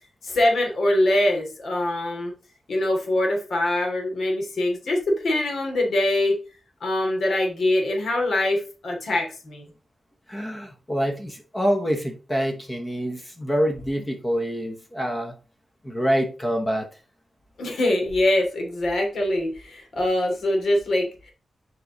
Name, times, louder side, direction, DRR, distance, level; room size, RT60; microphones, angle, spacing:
voice 1, 0.2-2.3 2.7-6.4 6.8-9.7 17.6-21.3, left 1 dB, 70° left, 2.9 m, -23 dB
voice 2, 10.3-15.3 15.8-16.9, equal, 15° left, 1.1 m, -26 dB
7.7 x 4.9 x 4.0 m
wide cardioid pair, 135°, 0 cm